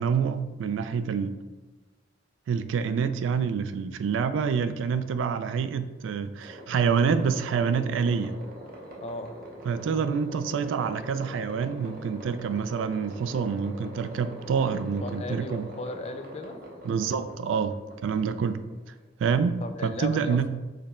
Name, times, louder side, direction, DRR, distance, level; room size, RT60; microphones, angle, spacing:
voice 1, 0.0-1.4 2.5-8.3 9.7-15.7 16.8-17.8 18.0-18.6 19.2-20.5, right 6 dB, 90° right, 12 dB, 0.3 m, -27 dB
sound 1, 6.4-19.0, equal, 50° right, 0.8 m, -43 dB
voice 2, 9.0-9.3 15.0-16.6 19.6-20.5, left 2 dB, 35° left, 7 dB, 0.4 m, -36 dB
5.0 x 2.2 x 4.2 m, 1.2 s
head